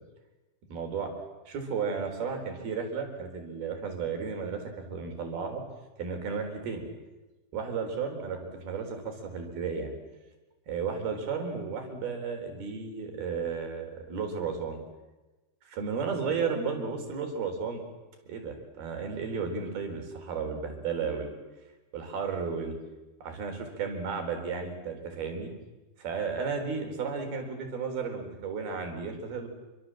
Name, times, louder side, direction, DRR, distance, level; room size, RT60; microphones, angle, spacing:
voice 1, 0.7-1.1 1.5-5.6 6.0-6.8 7.5-9.9 10.7-14.8 15.7-17.8 18.3-21.4 21.9-22.8 23.2-25.5 26.0-29.5, right 5 dB, 80° right, 5 dB, 5.8 m, -33 dB
28.0 x 24.5 x 7.6 m, 1.1 s
omnidirectional pair, 4.3 m